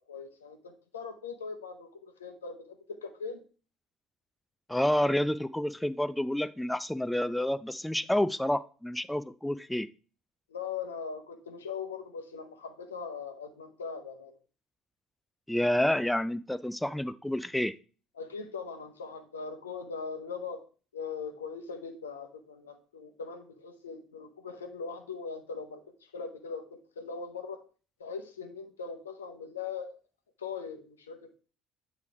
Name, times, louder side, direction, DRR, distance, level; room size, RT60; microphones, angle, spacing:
voice 1, 0.0-1.9 2.2-2.8 3.0-3.4 10.5-14.3 18.2-20.6 20.9-25.8 26.1-26.7 27.0-27.6 28.0-29.9 30.4-31.4, left 5 dB, 80° left, 6 dB, 0.7 m, -40 dB
voice 2, 4.7-9.9 15.5-17.7, left 1 dB, 5° left, 14 dB, 0.3 m, -29 dB
8.2 x 3.1 x 4.7 m, 0.38 s
figure-of-eight pair, 55°, 0 cm